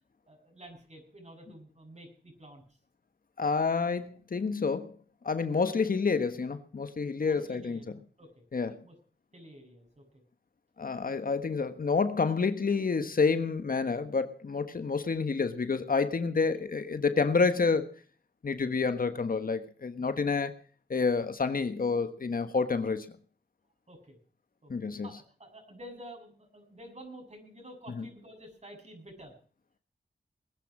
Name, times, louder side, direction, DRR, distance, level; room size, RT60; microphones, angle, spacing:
voice 1, 0.3-2.6 7.2-7.9 8.2-8.4 8.8-8.9 9.3-10.0 11.1-11.2 23.9-24.2 24.6-24.7 25.0-29.3, right 1 dB, 40° right, 7.6 m, -50 dB
voice 2, 3.4-5.0 5.2-7.8 8.5-8.8 10.8-17.9 18.4-20.5 20.9-23.1 24.7-25.1 27.9-28.0, left 4 dB, 55° left, 1.4 m, -28 dB
20.5 x 9.4 x 6.1 m
cardioid pair, 40°, 17 cm